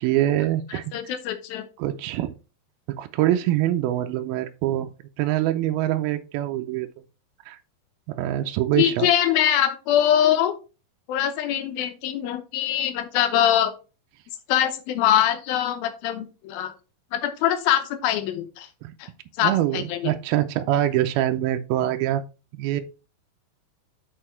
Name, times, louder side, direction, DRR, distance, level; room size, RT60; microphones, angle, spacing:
voice 1, 0.0-1.1 1.8-2.3 3.0-4.9 5.2-6.9 7.5-7.6 8.1-9.1 18.8-18.9 19.4-22.2 22.5-22.8, right 13 dB, 80° right, 2.4 m, -24 dB
voice 2, 0.9-1.7 8.8-10.5 11.1-13.7 14.5-16.7 17.1-18.7 19.0-19.1 19.4-20.0, left 11 dB, 75° left, 2.5 m, -23 dB
6.7 x 5.9 x 4.4 m
omnidirectional pair, 4.5 m